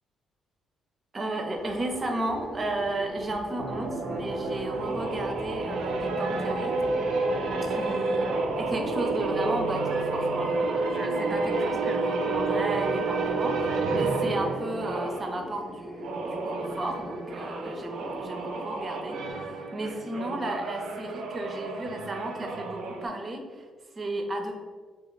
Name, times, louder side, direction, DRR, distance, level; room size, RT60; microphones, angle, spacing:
voice 1, 1.1-6.8 7.6-8.2 8.6-23.6 24.0-24.5, right 2 dB, 35° right, 4 dB, 0.6 m, -34 dB
sound 1, 1.5-19.3, equal, 10° left, 0.4 m, -41 dB
sound 2, 3.6-15.3 15.9-23.1, right 3 dB, 80° right, 0.5 m, -30 dB
3.3 x 2.8 x 3.9 m, 1.5 s
cardioid pair, 90°, 0 cm